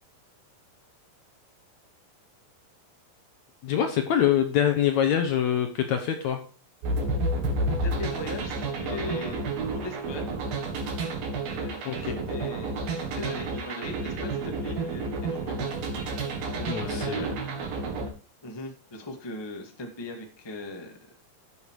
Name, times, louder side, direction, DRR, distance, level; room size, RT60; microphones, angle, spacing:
voice 1, 3.6-6.4 11.9-12.2 16.7-17.3, left 9 dB, 65° left, 6 dB, 2.0 m, -25 dB
sound 1, 6.8-18.1, right 2 dB, 80° right, 4.0 m, -30 dB
voice 2, 7.6-9.4 9.7-10.3 11.4-15.7 16.1-17.3 18.4-21.0, left 2 dB, 10° left, 3 dB, 1.2 m, -39 dB
12.5 x 7.1 x 4.8 m, 0.36 s
omnidirectional pair, 4.1 m